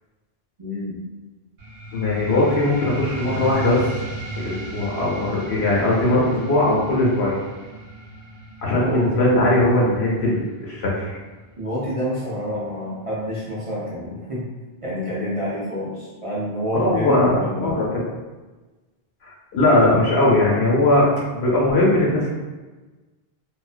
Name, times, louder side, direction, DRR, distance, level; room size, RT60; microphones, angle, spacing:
voice 1, 0.6-1.0 8.7-9.1 11.6-14.5 14.8-18.1, equal, 50° right, -8 dB, 0.4 m, -28 dB
sound 1, 1.6-12.6, right 1 dB, 70° right, 0.9 m, -35 dB
voice 2, 1.9-3.8 4.4-7.4 8.6-11.2 16.7-17.9 19.2-21.1 21.3-22.3, left 1 dB, 90° left, -5 dB, 1.0 m, -19 dB
2.4 x 2.2 x 2.4 m, 1.2 s
omnidirectional pair, 1.1 m